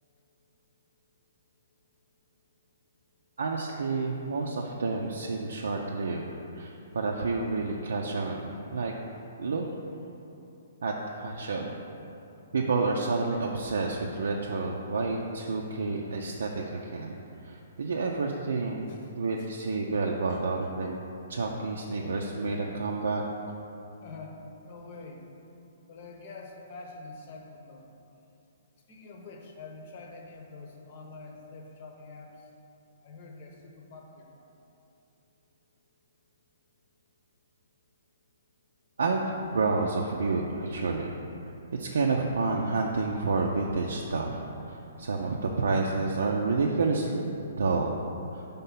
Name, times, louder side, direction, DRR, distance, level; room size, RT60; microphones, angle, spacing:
voice 1, 3.4-8.9 9.4-9.6 10.8-11.7 12.5-18.9 19.2-21.0 21.3-23.2 39.0-41.2 41.7-47.2 47.6-48.0 48.3-48.4, right 3 dB, 80° right, -1 dB, 0.5 m, -29 dB
voice 2, 24.0-24.4 24.6-25.2 25.9-27.8 28.9-32.3 33.0-34.5, left 3 dB, 50° left, 1 dB, 0.9 m, -46 dB
5.4 x 3.6 x 5.7 m, 2.8 s
hypercardioid pair, 145°, 0 cm